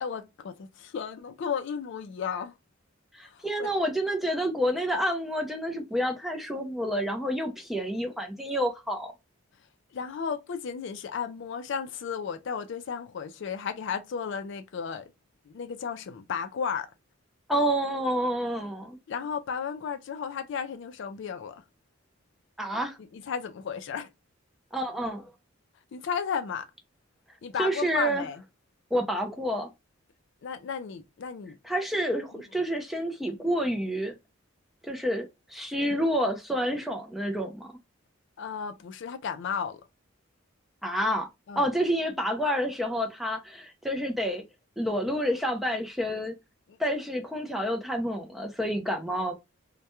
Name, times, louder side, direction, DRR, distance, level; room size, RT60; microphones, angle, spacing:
voice 1, 0.0-2.5 3.2-3.7 9.9-15.1 15.5-16.9 18.6-18.7 19.1-21.6 23.1-24.1 25.9-26.7 27.4-28.4 30.4-31.6 38.4-39.8 41.5-41.7 46.7-46.8, left 6 dB, 60° left, 0.4 m, -34 dB
voice 2, 3.1-9.1 17.5-19.0 22.6-23.0 24.7-25.3 27.6-28.3 28.9-29.7 31.6-34.1 34.8-37.7 40.8-41.3 41.6-44.4 44.8-46.3 46.8-49.3, equal, ahead, 0.4 m, -29 dB
2.2 x 2.1 x 2.9 m
head